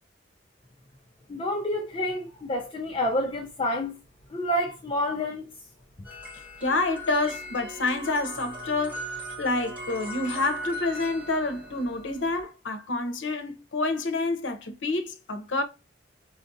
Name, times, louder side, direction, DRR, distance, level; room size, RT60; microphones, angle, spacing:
voice 1, 1.3-3.9 4.3-5.5, left 1 dB, 30° left, 0.5 m, -28 dB
sound 1, 6.0-12.4, equal, 10° right, 1.0 m, -38 dB
voice 2, 6.3-15.6, left 2 dB, 80° left, 0.7 m, -28 dB
5.1 x 2.5 x 2.6 m
head